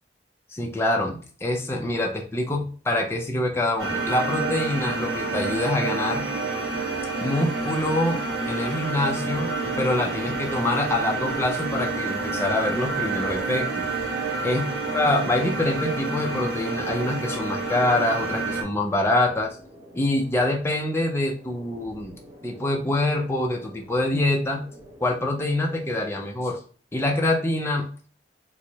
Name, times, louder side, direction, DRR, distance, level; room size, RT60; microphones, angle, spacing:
voice 1, 0.5-6.3 7.2-8.2 8.5-13.8 14.4-14.7 14.9-19.6 19.9-22.1 22.4-24.6 25.0-26.6 26.9-28.1, left 2 dB, 15° left, 0 dB, 0.5 m, -25 dB
sound 1, 3.8-18.6, right 3 dB, 80° right, 1.4 m, -28 dB
sound 2, 8.4-26.0, equal, 15° right, 0.8 m, -47 dB
4.7 x 2.1 x 2.7 m, 0.41 s
head